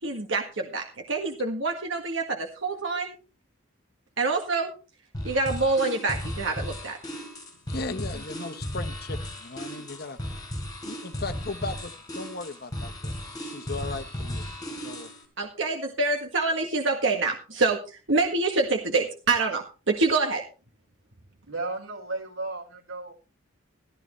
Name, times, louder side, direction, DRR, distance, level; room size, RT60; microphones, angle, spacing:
voice 1, 0.0-3.2 4.2-4.7 5.2-7.0 15.4-20.4, right 3 dB, 70° right, 2 dB, 1.7 m, -26 dB
sound 1, 5.1-15.2, equal, 20° left, 4.2 m, -35 dB
voice 2, 7.7-10.2 10.8-15.1, left 3 dB, 50° left, 10 dB, 1.0 m, -37 dB
voice 3, 21.4-23.2, right 2 dB, 90° right, 2 dB, 4.7 m, -34 dB
14.5 x 13.5 x 3.2 m, 0.32 s
head